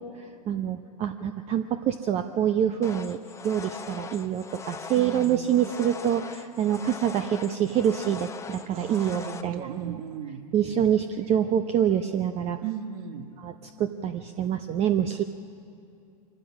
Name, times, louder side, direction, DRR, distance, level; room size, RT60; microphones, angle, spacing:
voice 1, 0.0-10.0 10.5-12.6 13.4-15.2, right 9 dB, 30° right, 8 dB, 0.7 m, -26 dB
sound 1, 2.8-9.4, left 5 dB, 15° left, 0.9 m, -40 dB
voice 2, 4.9-5.6 8.7-10.4 12.6-13.3 15.2-15.3, right 8 dB, 60° right, 8 dB, 1.6 m, -37 dB
24.0 x 15.0 x 7.4 m, 2.5 s
hypercardioid pair, 110°, 21 cm